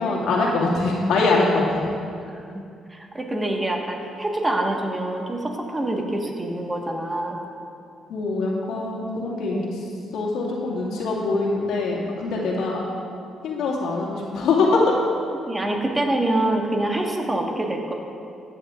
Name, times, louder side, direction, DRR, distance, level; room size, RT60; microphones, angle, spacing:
voice 1, 0.0-1.8 8.1-9.6 10.1-12.8 13.4-14.8, left 3 dB, 85° left, -4 dB, 2.1 m, -23 dB
voice 2, 2.2-2.6 2.9-7.4 9.5-9.8 11.3-11.4 12.5-12.7 15.4-17.9, right 1 dB, 15° right, 1 dB, 1.4 m, -26 dB
14.5 x 9.8 x 2.5 m, 2.5 s
cardioid pair, 90°, 0 cm